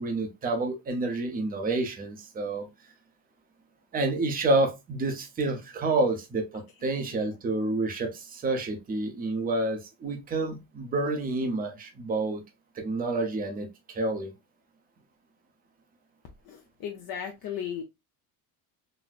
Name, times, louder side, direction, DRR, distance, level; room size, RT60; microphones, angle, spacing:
voice 1, 0.0-2.7 3.9-12.4 12.7-14.3, right 2 dB, 20° right, 0.6 m, -29 dB
voice 2, 16.5-17.8, left 8 dB, 50° left, 0.7 m, -36 dB
4.1 x 2.0 x 2.4 m
cardioid pair, 155°, 45 cm